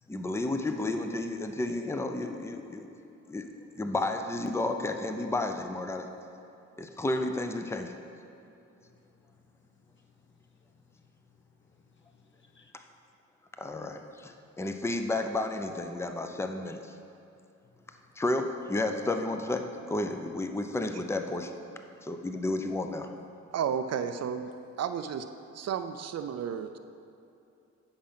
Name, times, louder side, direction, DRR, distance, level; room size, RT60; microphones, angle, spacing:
voice 1, 0.1-2.9 3.3-3.5 3.7-6.1 6.8-7.9 13.6-16.9 18.2-21.5 22.0-23.1, left 2 dB, 10° left, 6 dB, 0.6 m, -32 dB
voice 2, 8.9-9.5 9.9-10.1 10.5-10.8 11.3-12.7 17.9-18.0, left 5 dB, 40° left, 4 dB, 1.0 m, -64 dB
voice 3, 23.5-24.5 24.8-25.3 25.5-26.8, right 8 dB, 55° right, 9 dB, 0.5 m, -32 dB
8.7 x 5.2 x 5.7 m, 2.7 s
cardioid pair, 80°, 31 cm